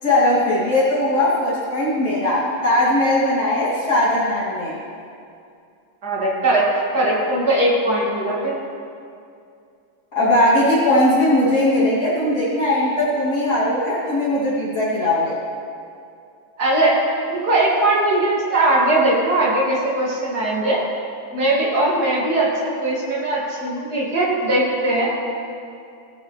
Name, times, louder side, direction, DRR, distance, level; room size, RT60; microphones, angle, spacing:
voice 1, 0.0-4.7 10.1-15.4, left 1 dB, 70° left, -10 dB, 3.4 m, -19 dB
voice 2, 6.0-6.7 6.9-8.5 16.6-20.8 21.3-25.2, right 1 dB, 75° right, -5 dB, 2.7 m, -20 dB
17.0 x 9.1 x 3.2 m, 2.5 s
omnidirectional pair, 1.7 m